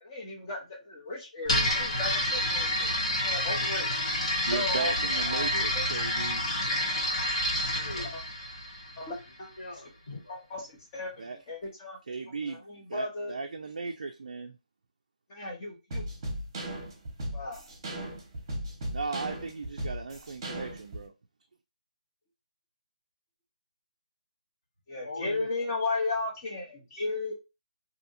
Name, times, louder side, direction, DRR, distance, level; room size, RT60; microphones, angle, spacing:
voice 1, 0.0-2.9 3.2-3.9 4.5-4.9 5.5-5.8 8.1-8.2 9.0-9.5 10.3-12.0 12.4-13.3 15.3-16.0 17.3-17.6 24.9-27.3, left 3 dB, 20° left, 0.7 m, -35 dB
sound 1, 1.4-9.3, left 1 dB, 50° left, 1.3 m, -29 dB
voice 2, 4.3-6.4 11.2-11.4 12.1-12.6 12.9-14.6 18.9-21.1, right 4 dB, 65° right, 0.3 m, -36 dB
voice 3, 5.1-6.0 7.7-8.1 9.6-10.4 11.1-11.2 25.0-25.7, left 2 dB, 75° left, 1.6 m, -42 dB
sound 2, 15.9-21.0, right 1 dB, 25° right, 1.0 m, -36 dB
2.7 x 2.6 x 2.5 m
hypercardioid pair, 170°, 4 cm